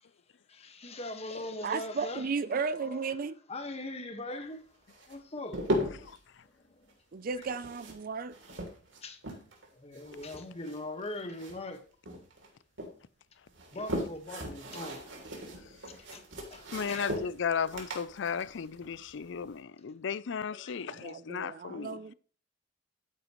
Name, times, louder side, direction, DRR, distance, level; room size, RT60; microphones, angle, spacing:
voice 1, 0.5-2.3 2.7-3.1 3.5-4.7 5.1-5.8 6.4-6.9 7.4-7.5 9.0-9.2 9.7-11.8 13.7-15.0 15.8-16.2 16.5-17.1 20.5-20.9, left 2 dB, 35° left, 1.5 m, -41 dB
voice 2, 1.6-3.4 7.1-8.3 20.9-22.1, right 5 dB, 45° right, 0.5 m, -34 dB
sound 1, 4.9-6.2 7.3-9.7 9.9-11.8 12.1-12.9 13.5-19.5, equal, 70° right, 3.1 m, -38 dB
voice 3, 16.7-22.0, left 6 dB, 65° left, 0.5 m, -35 dB
13.0 x 9.1 x 3.1 m
head